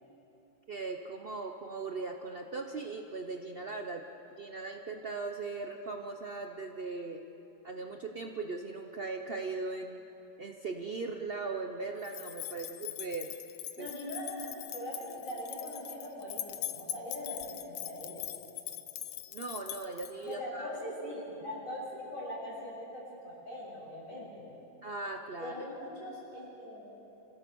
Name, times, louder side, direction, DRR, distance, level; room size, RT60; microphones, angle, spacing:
voice 1, 0.7-4.0 4.4-7.2 7.6-10.0 10.4-13.3 13.8-13.9 19.3-20.7 24.8-25.6, right 3 dB, 85° right, 4 dB, 0.5 m, -39 dB
sound 1, 12.0-20.4, left 12 dB, 85° left, 1.6 m, -42 dB
voice 2, 13.8-18.2 20.2-24.5 25.4-26.9, left 1 dB, 35° left, -6 dB, 7.5 m, -41 dB
26.5 x 15.0 x 7.0 m, 3.0 s
omnidirectional pair, 2.3 m